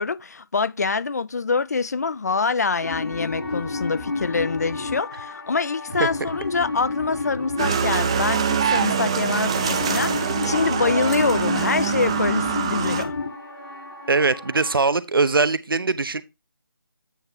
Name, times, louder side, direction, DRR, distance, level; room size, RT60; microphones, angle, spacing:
voice 1, 0.0-13.2, left 4 dB, 45° left, 0.4 m, -25 dB
sound 1, 2.8-14.7, left 3 dB, 80° left, 4.5 m, -31 dB
sound 2, 7.6-13.0, right 7 dB, 15° right, 0.4 m, -24 dB
voice 2, 14.1-16.2, right 3 dB, 70° right, 0.8 m, -21 dB
9.1 x 3.4 x 5.6 m
figure-of-eight pair, 165°, 12 cm